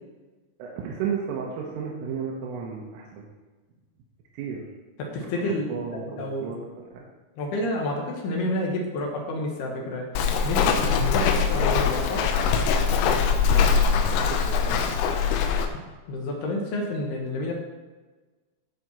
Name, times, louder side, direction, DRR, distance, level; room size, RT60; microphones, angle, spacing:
voice 1, 0.6-3.3 4.3-4.6 5.4-6.6 6.9-7.1 13.5-14.4 14.6-14.8, right 6 dB, 85° right, -2 dB, 3.6 m, -33 dB
voice 2, 5.0-6.5 7.4-10.1 10.4-12.3 16.1-17.5, left 1 dB, 65° left, 0 dB, 2.8 m, -29 dB
Walk footsteps, 10.2-15.7, left 6 dB, 90° left, 3.3 m, -22 dB
15.5 x 5.1 x 4.3 m, 1.3 s
omnidirectional pair, 5.8 m